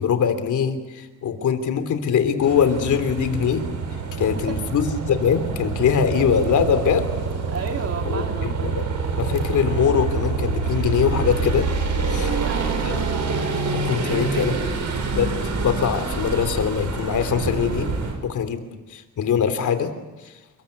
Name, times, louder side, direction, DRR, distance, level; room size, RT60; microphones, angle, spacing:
voice 1, 0.0-3.7 4.2-7.1 8.1-8.9 9.2-11.7 12.1-12.3 12.8-13.0 13.8-14.5 15.1-17.9 18.2-18.6 18.9-19.9, left 7 dB, 70° left, 9 dB, 3.2 m, -22 dB
sound 1, 2.4-18.2, right 4 dB, 65° right, 5.6 m, -26 dB
voice 2, 4.2-4.6 7.5-8.7 12.1-12.8 14.0-14.6, right 5 dB, 50° right, 4 dB, 3.0 m, -33 dB
29.5 x 21.5 x 8.4 m, 1.2 s
wide cardioid pair, 160°, 31 cm